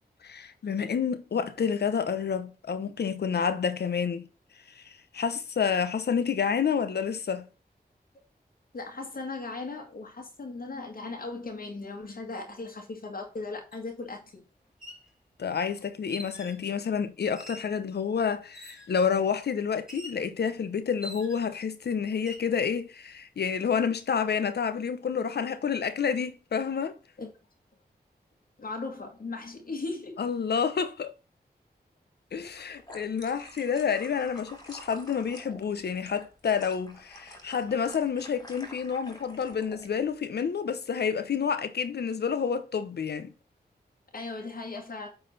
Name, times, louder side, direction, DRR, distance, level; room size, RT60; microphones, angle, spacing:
voice 1, 0.2-4.3 4.7-7.5 15.4-27.0 30.2-31.1 32.3-43.3, left 6 dB, 85° left, 0.9 m, -29 dB
voice 2, 8.7-14.4 27.2-27.3 28.6-30.2 44.1-45.1, left 3 dB, 60° left, 1.8 m, -37 dB
sound 1, 13.7-13.8 14.6-15.1 16.1-16.6 17.3-17.8 18.5-19.0 19.9-20.2 21.0-21.6 22.1-22.5, equal, 5° right, 2.9 m, -44 dB
sound 2, 32.4-39.9, equal, 25° left, 2.4 m, -49 dB
8.8 x 4.1 x 4.1 m
wide cardioid pair, 70°, 17 cm